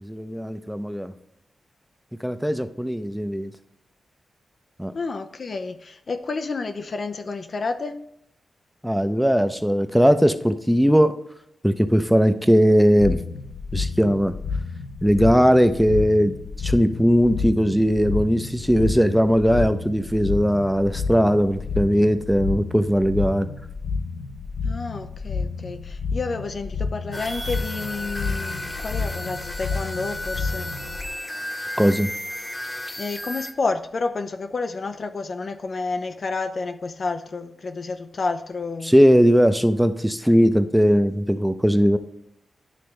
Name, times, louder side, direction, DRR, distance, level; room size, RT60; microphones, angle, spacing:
voice 1, 0.0-1.1 2.2-3.5 4.8-4.9 8.8-11.1 11.6-13.2 13.7-14.3 15.0-16.3 16.6-23.5 31.8-32.1 38.8-42.0, equal, 5° right, 0.6 m, -19 dB
voice 2, 4.9-8.1 24.6-30.7 33.0-38.9, left 3 dB, 60° left, 0.5 m, -30 dB
sound 1, 13.0-31.1, left 4 dB, 80° left, 0.8 m, -30 dB
sound 2, 27.1-33.5, left 1 dB, 20° left, 1.0 m, -33 dB
9.9 x 3.4 x 3.2 m
supercardioid pair, 40°, 0 cm